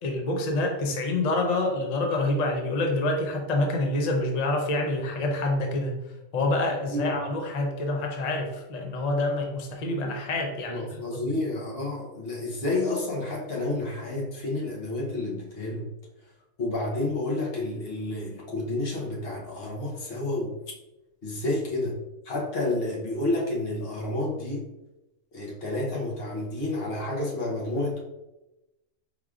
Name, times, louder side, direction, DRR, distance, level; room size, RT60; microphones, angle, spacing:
voice 1, 0.0-5.9 6.3-10.8, left 2 dB, 70° left, 2 dB, 0.3 m, -27 dB
voice 2, 10.7-15.9 16.6-20.5 21.2-22.0 22.2-24.7 25.3-28.0, left 2 dB, 50° left, -3 dB, 1.0 m, -30 dB
4.7 x 3.4 x 2.4 m, 0.98 s
omnidirectional pair, 1.5 m